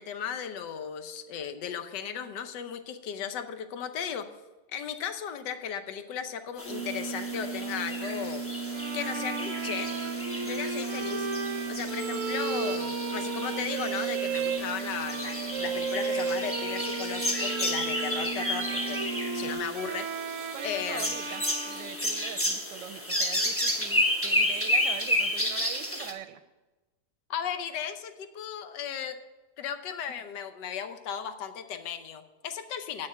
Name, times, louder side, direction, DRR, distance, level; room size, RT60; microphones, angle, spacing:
voice 1, 0.0-4.3 4.7-8.4 8.9-9.9 10.4-11.3 11.7-19.0 19.3-20.1 20.6-21.2 27.3-29.2 29.6-33.1, left 8 dB, 70° left, 9 dB, 1.4 m, -36 dB
sound 1, 6.6-19.5, right 5 dB, 50° left, 2.5 m, -37 dB
sound 2, 6.6-26.1, left 1 dB, 10° left, 0.6 m, -32 dB
Bowed string instrument, 8.7-22.6, right 5 dB, 60° right, 1.0 m, -35 dB
voice 2, 20.5-26.4, right 11 dB, 80° right, 10 dB, 1.2 m, -42 dB
8.6 x 6.4 x 7.4 m, 1.1 s
omnidirectional pair, 2.0 m